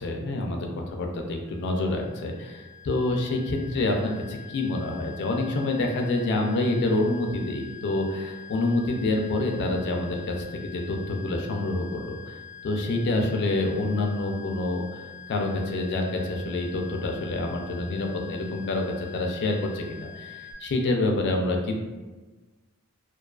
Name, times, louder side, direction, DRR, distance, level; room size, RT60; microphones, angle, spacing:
voice 1, 0.0-15.0 15.3-21.8, left 2 dB, 50° left, 2 dB, 0.4 m, -27 dB
sound 1, 1.5-20.5, left 8 dB, 25° right, 0.6 m, -45 dB
2.3 x 2.3 x 2.3 m, 1.3 s
head